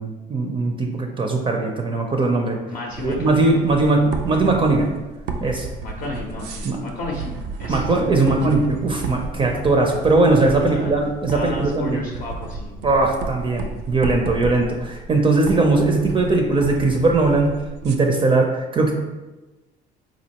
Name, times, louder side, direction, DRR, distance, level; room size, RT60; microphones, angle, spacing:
voice 1, 0.0-2.6 3.0-4.9 5.4-5.7 6.6-6.8 7.7-12.0 12.8-17.5 17.8-18.9, right 3 dB, 30° right, 2 dB, 0.5 m, -19 dB
voice 2, 2.7-3.6 5.8-8.4 10.6-11.0 11.3-12.9, left 2 dB, 55° left, 0 dB, 0.5 m, -33 dB
sound 1, 2.9-18.0, right 3 dB, 85° right, 0.4 m, -32 dB
4.2 x 2.5 x 2.8 m, 1.1 s
cardioid pair, 110°, 17 cm